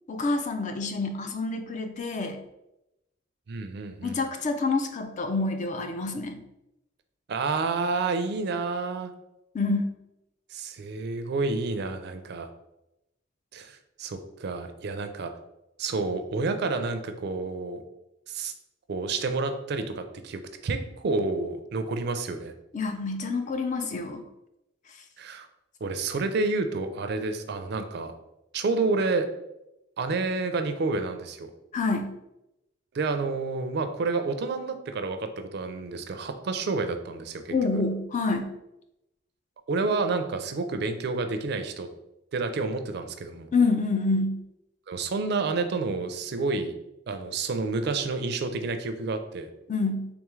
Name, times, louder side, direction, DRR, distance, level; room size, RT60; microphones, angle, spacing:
voice 1, 0.1-2.4 4.0-6.4 9.5-9.9 22.7-24.2 24.9-25.0 31.7-32.1 37.5-38.5 43.5-44.4 49.7-50.1, left 3 dB, 40° left, 7 dB, 0.4 m, -27 dB
voice 2, 3.5-4.2 7.3-9.1 10.5-12.5 13.5-15.3 15.8-17.8 18.3-18.5 18.9-22.5 25.2-25.5 25.8-28.1 28.5-29.3 30.0-31.5 32.9-37.5 39.7-41.9 42.3-43.5 44.9-46.7 47.1-49.5, right 3 dB, 60° right, 8 dB, 0.4 m, -29 dB
3.5 x 3.5 x 3.1 m, 0.89 s
head